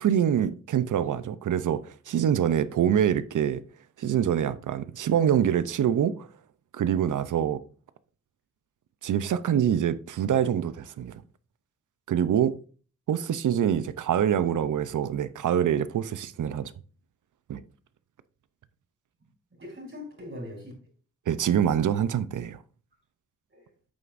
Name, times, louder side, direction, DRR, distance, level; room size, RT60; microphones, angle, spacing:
voice 1, 0.0-3.6 4.0-6.3 6.7-7.6 9.0-11.2 12.1-12.6 13.1-16.7 17.5-17.6 21.3-22.6, right 9 dB, 85° right, 0.6 m, -25 dB
voice 2, 14.2-14.9 19.5-20.7 23.5-23.7, left 1 dB, 45° right, 4.1 m, -42 dB
9.0 x 6.7 x 2.5 m
wide cardioid pair, 90°, 30 cm